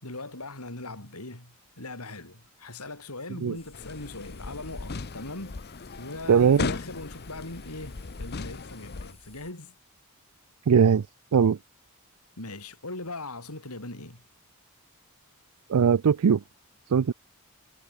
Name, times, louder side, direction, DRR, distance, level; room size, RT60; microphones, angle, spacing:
voice 1, 0.0-5.6 6.0-9.7 12.4-14.2, left 2 dB, 85° left, 5.7 m, -40 dB
sound 1, 3.5-9.5, left 2 dB, 25° left, 6.8 m, -54 dB
sound 2, 3.7-9.1, left 3 dB, 45° left, 0.8 m, -37 dB
voice 2, 6.3-6.7 10.7-11.1 11.3-11.6 15.7-16.4 16.9-17.1, right 7 dB, 90° right, 0.4 m, -20 dB
head